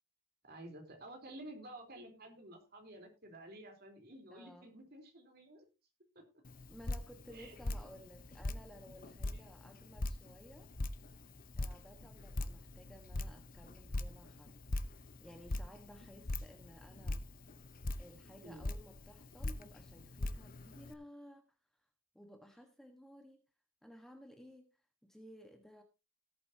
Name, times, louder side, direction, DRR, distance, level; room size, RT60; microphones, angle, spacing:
voice 1, 0.4-5.7 6.2-6.3 7.3-7.6 9.2-9.6 18.4-18.7, right 1 dB, 45° right, 3 dB, 3.8 m, -52 dB
voice 2, 4.3-4.7 6.7-10.7 11.6-14.6 15.0-17.2 18.0-21.4 22.1-23.4 23.8-24.7 25.0-25.8, equal, ahead, 4 dB, 1.3 m, -56 dB
Drip, 6.4-20.9, left 2 dB, 40° left, 0.8 m, -42 dB
18.0 x 8.4 x 2.8 m, 0.26 s
head